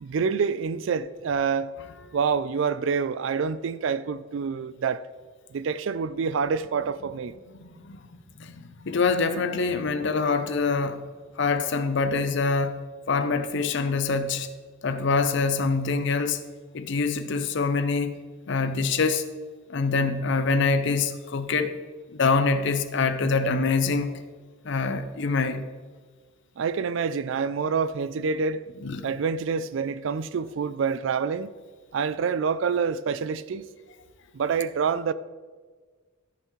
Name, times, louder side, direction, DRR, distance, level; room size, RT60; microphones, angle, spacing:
voice 1, 0.0-1.7 2.1-5.0 5.5-7.3 26.6-28.6 29.0-31.5 31.9-33.7 34.3-35.1, right 5 dB, 60° right, 0.3 m, -27 dB
voice 2, 7.6-8.0 8.4-11.1 11.4-12.8 13.1-14.5 14.8-16.4 16.7-18.2 18.5-19.2 19.7-21.7 22.1-24.1 24.6-25.6 28.8-29.1, left 4 dB, 60° left, 0.6 m, -25 dB
14.0 x 5.7 x 3.1 m
head